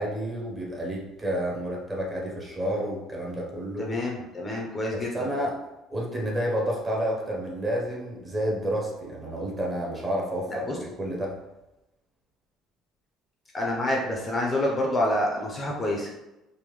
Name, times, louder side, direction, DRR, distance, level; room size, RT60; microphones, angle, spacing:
voice 1, 0.0-3.9 5.1-5.5 5.9-11.3, equal, 20° right, -2 dB, 0.7 m, -30 dB
voice 2, 3.8-5.2 10.5-10.8 13.5-16.1, left 1 dB, 20° left, -1 dB, 0.5 m, -27 dB
3.4 x 2.1 x 3.1 m, 0.95 s
cardioid pair, 145°, 0 cm